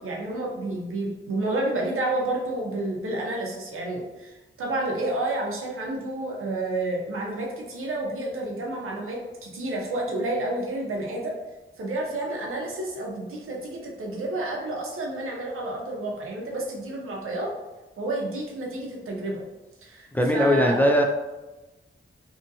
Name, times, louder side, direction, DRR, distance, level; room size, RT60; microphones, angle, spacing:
voice 1, 0.0-11.4 11.8-17.5 18.0-19.4 19.8-20.8, right 2 dB, 90° right, -2 dB, 0.6 m, -30 dB
voice 2, 20.1-21.0, equal, 10° left, 1 dB, 0.3 m, -20 dB
2.8 x 2.5 x 2.6 m, 1.1 s
wide cardioid pair, 75°, 21 cm